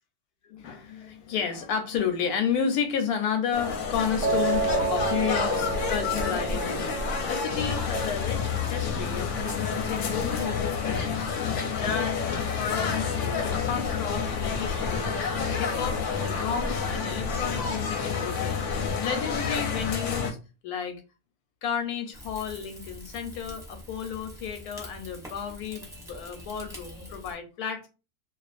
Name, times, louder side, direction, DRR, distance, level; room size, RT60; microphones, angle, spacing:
voice 1, 0.4-15.2 15.5-20.4 20.6-21.0 21.6-27.9, left 7 dB, 85° left, 1.1 m, -32 dB
sound 1, 3.5-20.3, left 5 dB, 65° left, 0.8 m, -29 dB
Piano, 4.2-10.4, right 4 dB, 60° right, 0.8 m, -32 dB
Rain / Fire, 22.1-27.3, equal, 5° right, 0.5 m, -45 dB
2.4 x 2.3 x 2.4 m
omnidirectional pair, 1.6 m